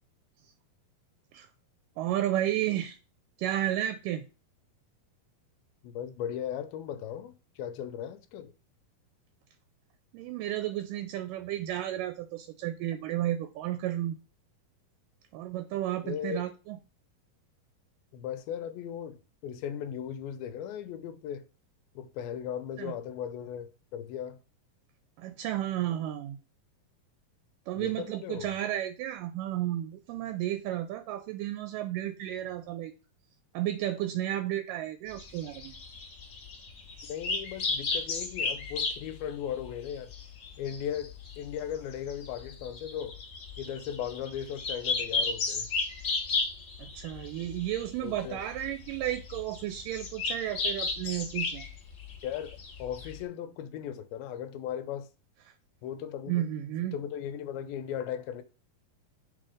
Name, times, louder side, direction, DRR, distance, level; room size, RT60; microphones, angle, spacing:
voice 1, 2.0-3.0 3.4-4.3 10.1-14.2 15.3-16.8 22.8-22.9 25.2-26.4 27.7-32.9 33.5-35.7 46.8-51.7 56.3-57.0, right 13 dB, 80° right, 2.0 m, -32 dB
voice 2, 5.8-8.5 16.0-16.4 18.1-21.5 22.0-24.4 27.8-28.5 37.1-40.1 40.6-43.2 43.6-45.7 48.0-48.4 52.2-55.1 55.8-56.4 56.9-58.4, left 9 dB, 85° left, 2.6 m, -37 dB
sound 1, 35.1-53.2, left 4 dB, 65° left, 1.1 m, -35 dB
6.5 x 4.2 x 4.9 m
omnidirectional pair, 4.2 m